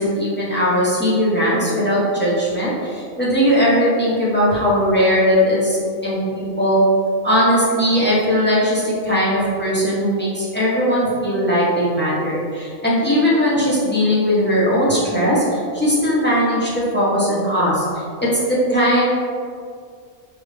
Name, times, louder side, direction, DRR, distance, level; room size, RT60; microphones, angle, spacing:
voice 1, 0.0-6.8 7.2-17.8 18.2-19.1, equal, 10° left, -8 dB, 0.7 m, -19 dB
4.8 x 2.7 x 3.2 m, 2.2 s
omnidirectional pair, 1.4 m